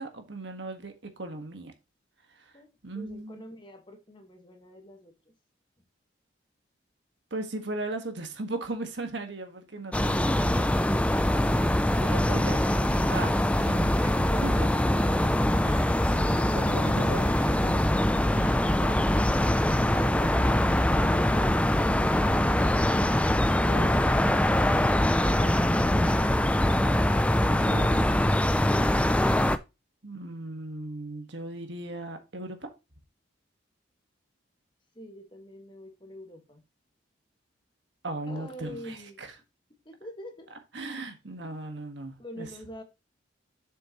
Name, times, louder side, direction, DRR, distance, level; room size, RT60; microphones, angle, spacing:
voice 1, 0.0-1.7 2.8-3.4 7.3-14.1 14.4-14.7 15.6-17.8 18.3-19.1 27.4-28.1 30.0-32.7 38.0-39.3 40.7-42.5, right 2 dB, 65° right, 1.6 m, -38 dB
voice 2, 2.5-5.3 13.5-15.3 19.9-21.6 34.9-36.6 38.3-39.2 39.8-40.5 42.2-42.8, equal, 25° left, 1.5 m, -44 dB
sound 1, 9.9-29.6, left 1 dB, 5° left, 0.3 m, -23 dB
7.6 x 6.3 x 3.0 m
head